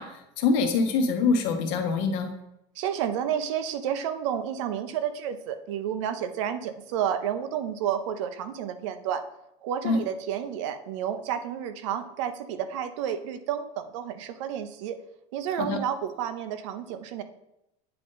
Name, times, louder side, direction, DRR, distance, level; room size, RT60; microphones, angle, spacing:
voice 1, 0.0-2.3 9.8-10.1 15.6-15.8, left 4 dB, 55° left, 6 dB, 1.0 m, -25 dB
voice 2, 2.8-9.2 9.6-15.0 15.3-17.2, right 9 dB, 80° right, 10 dB, 0.7 m, -31 dB
8.8 x 3.8 x 3.8 m, 0.85 s
cardioid pair, 180°, 16 cm